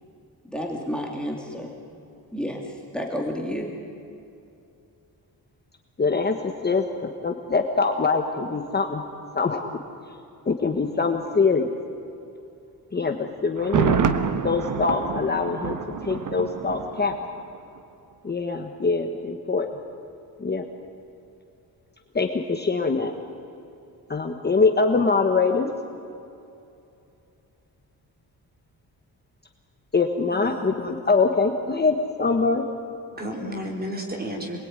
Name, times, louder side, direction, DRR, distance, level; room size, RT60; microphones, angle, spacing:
voice 1, 0.4-1.7 2.3-3.7, equal, ahead, 0 dB, 2.4 m, -31 dB
voice 2, 6.0-9.0 9.3-9.7 10.5-11.7 12.9-14.0 14.4-15.8 16.0-17.1 18.2-19.7 20.4-20.6 22.1-23.1 24.1-25.7 29.9-32.6, left 4 dB, 25° left, 4 dB, 1.3 m, -23 dB
Thunder, 13.6-17.5 17.8-17.9, right 6 dB, 55° right, 1.4 m, -27 dB
voice 3, 30.3-30.9 33.1-34.6, equal, 25° right, 1 dB, 4.3 m, -33 dB
27.5 x 21.0 x 9.8 m, 2.7 s
wide cardioid pair, 180°, 38 cm